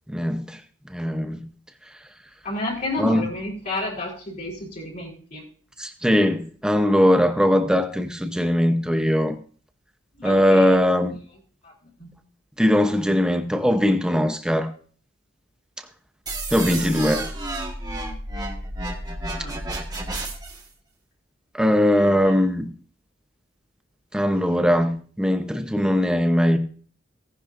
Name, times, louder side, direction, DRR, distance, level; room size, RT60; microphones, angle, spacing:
voice 1, 0.1-0.6 0.9-1.4 3.0-3.3 5.8-9.4 10.2-11.2 12.6-14.7 16.5-17.3 21.5-22.7 24.1-26.6, equal, 5° right, 0.8 m, -20 dB
voice 2, 2.4-5.4 10.2-10.8 11.6-11.7 12.0-12.1 19.4-19.6 22.0-22.3, left 2 dB, 45° left, 3.9 m, -31 dB
sound 1, 16.3-20.7, right 1 dB, 20° right, 1.6 m, -31 dB
17.5 x 10.5 x 2.6 m
head